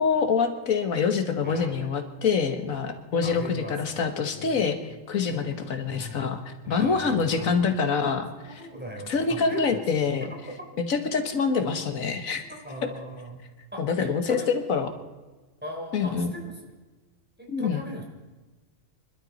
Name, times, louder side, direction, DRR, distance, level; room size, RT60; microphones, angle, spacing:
voice 1, 0.0-8.3 9.1-10.3 10.9-12.4 13.8-14.9 15.9-16.3 17.5-17.8, left 5 dB, 85° left, 7 dB, 1.7 m, -26 dB
voice 2, 3.2-4.7 5.9-7.7 8.5-9.8 12.5-13.4 13.7-14.5 15.6-16.6 17.4-18.0, equal, 5° right, -1 dB, 3.6 m, -39 dB
25.5 x 12.5 x 4.1 m, 1.2 s
omnidirectional pair, 1.4 m